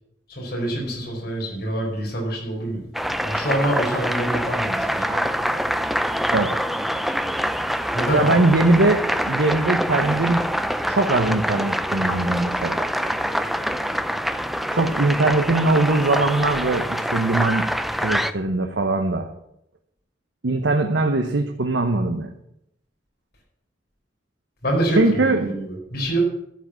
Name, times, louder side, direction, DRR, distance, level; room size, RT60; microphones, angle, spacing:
voice 1, 0.3-2.9 3.2-5.0 7.9-8.4 24.6-26.2, right 1 dB, 60° left, -2 dB, 4.5 m, -26 dB
sound 1, 2.9-18.3, equal, ahead, 0.4 m, -25 dB
voice 2, 5.1-5.6 6.3-6.6 8.1-10.4 10.9-12.9 14.7-19.3 20.4-22.3 25.0-25.5, right 2 dB, 90° right, 5 dB, 0.9 m, -21 dB
12.5 x 5.1 x 8.2 m, 0.80 s
head